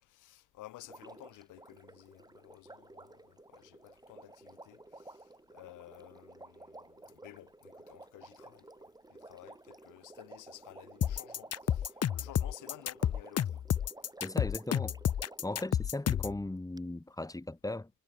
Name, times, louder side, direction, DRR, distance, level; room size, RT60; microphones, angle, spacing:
voice 1, 0.1-5.2 5.5-8.7 9.1-13.5, left 16 dB, 90° left, 6.8 m, -54 dB
Water, 0.8-15.9 16.8-16.9, right 2 dB, 15° right, 4.9 m, -53 dB
sound 1, 11.0-16.4, left 9 dB, 55° left, 1.8 m, -30 dB
voice 2, 14.2-14.9 15.4-17.9, left 2 dB, 10° left, 3.9 m, -37 dB
cardioid pair, 90°, 30 cm